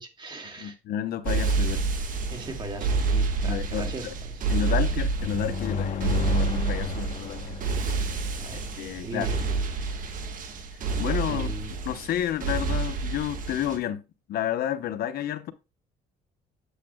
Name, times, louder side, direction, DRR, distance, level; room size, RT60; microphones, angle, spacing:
voice 1, 0.0-0.8 2.3-4.1 8.4-8.6 9.0-9.5 11.3-11.7, right 2 dB, 25° right, 2.1 m, -37 dB
voice 2, 0.6-2.1 3.4-4.1 4.5-7.6 8.8-9.4 11.0-11.5 11.8-14.0 14.3-15.5, left 11 dB, 65° left, 0.8 m, -31 dB
sound 1, 1.3-13.8, right 4 dB, 50° right, 1.5 m, -28 dB
sound 2, 5.2-8.9, left 6 dB, 40° left, 1.0 m, -33 dB
8.4 x 8.3 x 2.2 m
cardioid pair, 110°, 17 cm